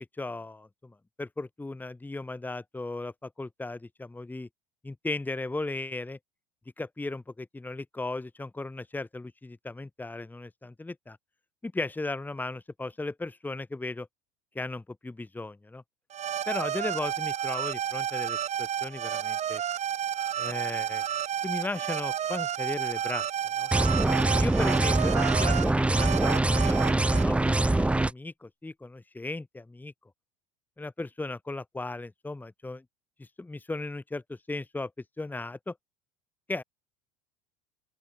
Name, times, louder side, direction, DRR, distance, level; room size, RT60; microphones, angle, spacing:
voice 1, 0.2-4.5 4.8-6.2 6.8-11.2 11.6-14.1 14.6-15.8 16.5-19.6 20.4-21.0 21.4-23.3 23.6-23.7 24.4-29.9 30.8-32.8 33.2-34.9 35.2-35.7 36.5-36.6, left 2 dB, 10° left, 1.9 m, -36 dB
sound 1, 16.1-27.2, right 10 dB, 35° right, 3.4 m, -31 dB
sound 2, 23.7-28.1, right 2 dB, 5° right, 0.6 m, -24 dB
open air
hypercardioid pair, 75°, 19 cm